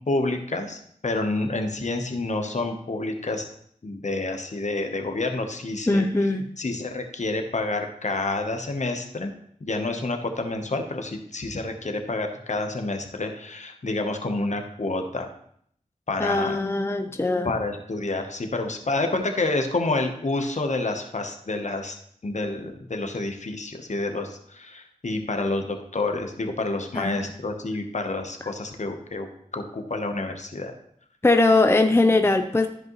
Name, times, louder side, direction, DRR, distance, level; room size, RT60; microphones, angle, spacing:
voice 1, 0.1-3.5 3.8-6.3 6.6-9.3 9.6-15.3 16.1-16.6 17.4-22.0 22.2-29.3 29.5-30.7, left 2 dB, 65° left, 5 dB, 1.0 m, -28 dB
voice 2, 5.9-6.5 16.2-17.5 26.9-27.3 31.2-32.7, left 2 dB, 20° left, 7 dB, 0.6 m, -21 dB
13.0 x 5.3 x 3.1 m, 0.67 s
wide cardioid pair, 70°, 13 cm